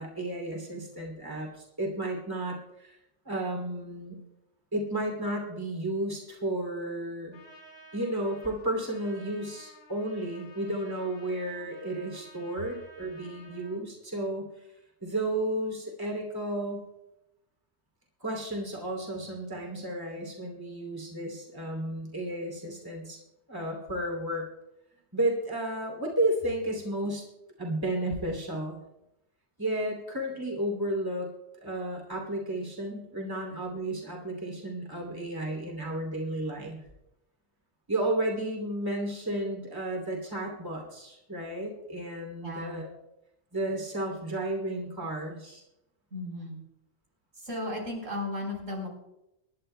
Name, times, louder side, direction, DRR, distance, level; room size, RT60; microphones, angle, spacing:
voice 1, 0.0-3.0 3.2-4.2 4.7-7.4 7.9-14.5 15.0-16.8 18.2-23.2 23.5-24.4 25.1-27.3 27.6-28.8 29.6-31.3 31.5-36.8 37.9-42.9 43.5-45.6, right 1 dB, 15° right, 0 dB, 2.7 m, -32 dB
Trumpet, 7.3-13.8, equal, 55° left, 1.9 m, -53 dB
voice 2, 42.4-42.8 46.1-46.6 47.4-48.9, left 1 dB, 85° right, -1 dB, 4.4 m, -35 dB
25.0 x 11.0 x 2.2 m, 0.88 s
omnidirectional pair, 1.3 m